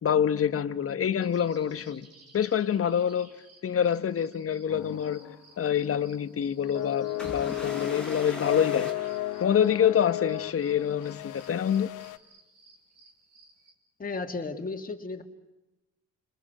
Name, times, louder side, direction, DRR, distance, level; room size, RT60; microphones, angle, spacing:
voice 1, 0.0-2.1 2.3-3.3 3.6-5.2 5.6-8.9 9.4-11.9, left 8 dB, 50° left, 1.3 m, -26 dB
sound 1, 1.2-13.7, right 3 dB, 55° right, 5.9 m, -57 dB
sound 2, 4.7-5.5 5.8-6.0 6.7-12.2, left 15 dB, 90° left, 1.3 m, -34 dB
sound 3, 7.2-10.0, left 1 dB, 5° left, 4.6 m, -41 dB
voice 2, 14.0-15.2, left 3 dB, 30° left, 2.8 m, -34 dB
30.0 x 21.0 x 7.5 m
cardioid pair, 90°, 30 cm